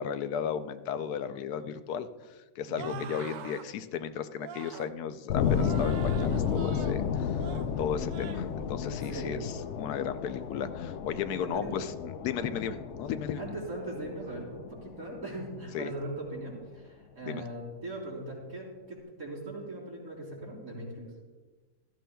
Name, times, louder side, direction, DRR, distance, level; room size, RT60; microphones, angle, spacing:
voice 1, 0.0-11.9 12.2-13.4 15.7-15.9 17.2-17.4, left 8 dB, 80° left, 11 dB, 1.1 m, -35 dB
voice 2, 2.7-3.0 9.1-9.6 11.6-11.8 12.3-12.5 13.4-21.1, right 1 dB, 60° right, -4 dB, 3.7 m, -40 dB
sound 1, 2.7-3.7 4.4-4.9 5.4-7.0 7.3-7.7 8.1-8.5 8.9-9.2, right 8 dB, 80° right, 1.1 m, -44 dB
sound 2, 5.3-16.1, left 7 dB, 65° left, 0.7 m, -32 dB
15.5 x 13.0 x 2.3 m, 1.3 s
omnidirectional pair, 1.6 m